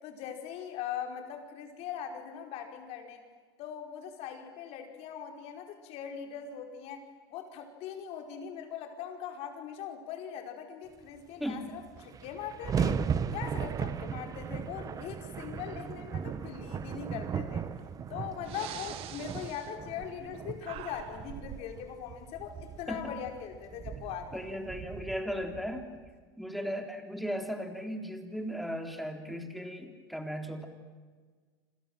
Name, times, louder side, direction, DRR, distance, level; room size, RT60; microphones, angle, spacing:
voice 1, 0.0-3.2 3.6-13.0 13.3-17.6 18.1-24.6, left 8 dB, 55° left, 4 dB, 5.2 m, -41 dB
voice 2, 11.4-11.7 22.9-23.1 24.3-25.9 26.4-30.7, equal, ahead, 5 dB, 3.7 m, -36 dB
sound 1, 11.5-11.6 11.8-26.1, right 7 dB, 30° right, 1.3 m, -37 dB
Breathing, 17.8-17.9 18.4-20.4 20.6-21.7, right 11 dB, 50° right, 2.2 m, -44 dB
28.5 x 26.5 x 7.7 m, 1.5 s
supercardioid pair, 115°, 13 cm